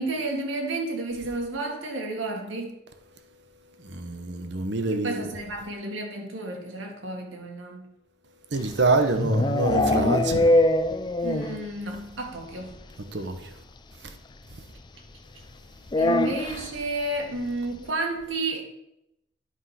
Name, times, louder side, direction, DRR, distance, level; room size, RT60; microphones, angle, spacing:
voice 1, 0.0-2.8 4.9-7.9 11.2-12.7 16.0-18.7, right 2 dB, 85° right, 1.9 m, -31 dB
voice 2, 3.8-5.3 8.5-10.5 13.1-13.5 14.0-14.1, right 3 dB, 60° right, 1.0 m, -26 dB
sound 1, 8.6-11.7 11.9-12.0 12.3-12.4 12.7-12.8 14.1-14.2 15.9-16.7, left 1 dB, 25° left, 0.4 m, -23 dB
10.0 x 4.9 x 5.8 m
head